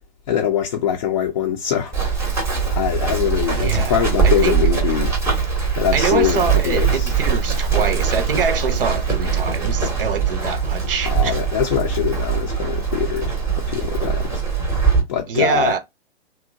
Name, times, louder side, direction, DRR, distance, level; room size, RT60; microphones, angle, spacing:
voice 1, 0.3-1.9 2.7-5.1 5.7-7.1 11.1-14.4 15.1-15.7, left 10 dB, 35° left, 0.5 m, -23 dB
Run, 1.9-15.0, right 6 dB, 10° right, 0.7 m, -21 dB
voice 2, 3.5-4.6 5.9-11.4 15.3-15.8, right 7 dB, 60° right, 0.6 m, -24 dB
2.8 x 2.1 x 2.4 m
figure-of-eight pair, 115°, 32 cm